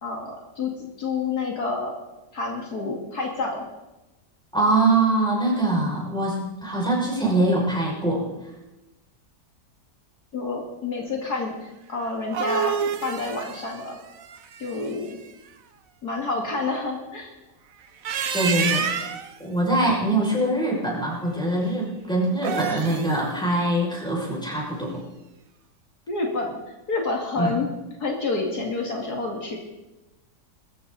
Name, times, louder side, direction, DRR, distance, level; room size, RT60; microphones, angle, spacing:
voice 1, 0.0-0.7 1.0-1.9 2.3-3.6 10.3-14.0 14.6-15.2 16.0-17.3 26.1-26.6 26.9-27.7 28.0-29.6, left 3 dB, 70° left, 0 dB, 2.7 m, -28 dB
voice 2, 4.5-8.3 18.3-19.1 19.4-25.0 27.4-27.5, right 2 dB, ahead, -4 dB, 6.0 m, -23 dB
sound 1, 12.0-15.1 17.8-19.3 22.3-23.2, right 6 dB, 60° right, 1.3 m, -28 dB
21.0 x 14.5 x 4.1 m, 1.0 s
omnidirectional pair, 1.8 m